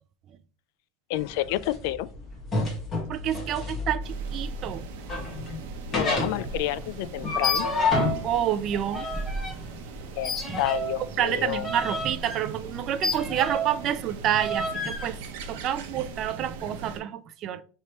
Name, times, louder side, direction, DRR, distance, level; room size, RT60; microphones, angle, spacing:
voice 1, 1.1-2.1 5.9-7.7 10.2-11.7, left 14 dB, 65° left, 0.3 m, -29 dB
sound 1, 1.1-10.7, left 3 dB, 20° left, 1.6 m, -30 dB
voice 2, 3.1-4.9 8.2-9.1 9.7-9.8 11.2-15.2 15.5-17.6, right 10 dB, 35° right, 0.4 m, -28 dB
sound 2, 4.0-17.0, right 4 dB, 80° right, 0.8 m, -41 dB
sound 3, 7.3-8.2 8.5-9.6 10.2-13.8 14.3-15.1, equal, 5° left, 0.9 m, -32 dB
5.4 x 3.3 x 3.0 m
cardioid pair, 160°, 0 cm